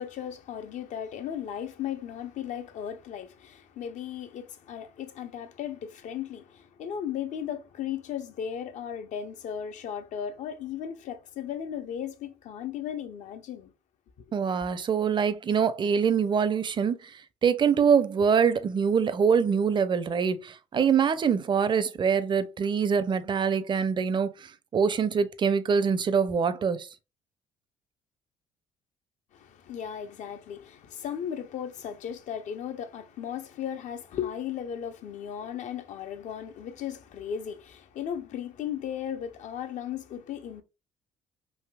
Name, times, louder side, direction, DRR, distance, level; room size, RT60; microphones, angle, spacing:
voice 1, 0.0-13.7 29.3-40.6, left 9 dB, 60° left, 0.6 m, -36 dB
voice 2, 14.3-17.0 17.4-24.3 24.7-26.9, right 6 dB, 35° right, 0.4 m, -24 dB
3.4 x 2.7 x 2.2 m
supercardioid pair, 65°, 14 cm